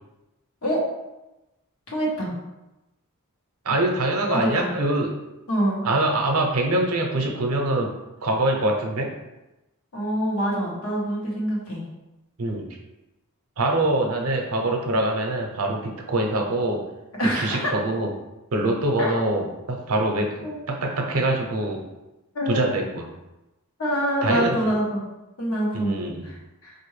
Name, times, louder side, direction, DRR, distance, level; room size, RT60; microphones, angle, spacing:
voice 1, 1.9-2.4 4.3-4.6 5.5-5.8 9.9-11.8 17.2-17.7 19.0-19.1 20.4-20.6 22.3-22.7 23.8-25.1 25.4-25.9 26.2-26.4 26.6-26.7, equal, 70° left, -3 dB, 1.0 m, -25 dB
voice 2, 3.6-5.2 5.8-7.9 8.2-9.1 12.4-12.7 13.6-16.8 17.3-18.1 18.5-21.8 22.5-23.1 24.2-24.6 25.7-26.3, right 2 dB, 70° right, 2 dB, 0.7 m, -24 dB
4.5 x 2.6 x 3.1 m, 1.0 s
head